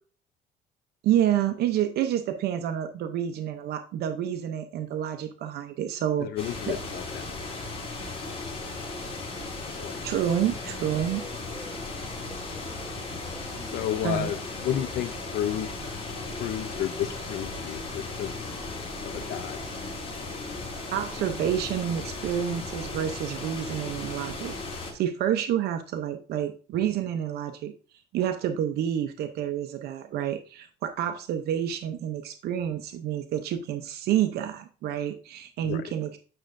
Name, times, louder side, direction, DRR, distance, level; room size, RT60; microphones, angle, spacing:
voice 1, 1.0-6.7 10.0-11.3 14.0-14.3 20.9-27.7 28.1-36.2, right 10 dB, 70° right, 8 dB, 0.6 m, -29 dB
voice 2, 6.2-7.3 9.7-10.0 13.7-15.7 16.4-18.3 19.0-19.6 35.6-35.9, left 11 dB, 75° left, 10 dB, 0.6 m, -32 dB
sound 1, 6.4-24.9, left 3 dB, 35° left, 3.7 m, -36 dB
sound 2, 8.6-15.2, left 1 dB, 10° left, 1.0 m, -48 dB
8.8 x 6.3 x 2.6 m, 0.39 s
cardioid pair, 110°, 17 cm